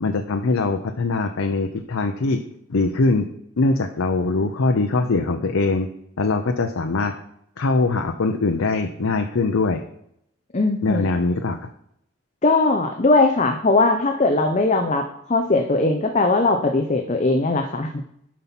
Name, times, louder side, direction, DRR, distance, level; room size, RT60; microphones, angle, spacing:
voice 1, 0.0-2.4 2.7-3.2 3.6-5.9 6.2-7.1 7.6-9.8 10.8-11.7, left 3 dB, 85° left, 5 dB, 0.6 m, -22 dB
voice 2, 10.5-11.1 12.4-17.9, left 2 dB, 35° left, 4 dB, 0.7 m, -19 dB
7.4 x 5.6 x 5.9 m, 0.74 s
head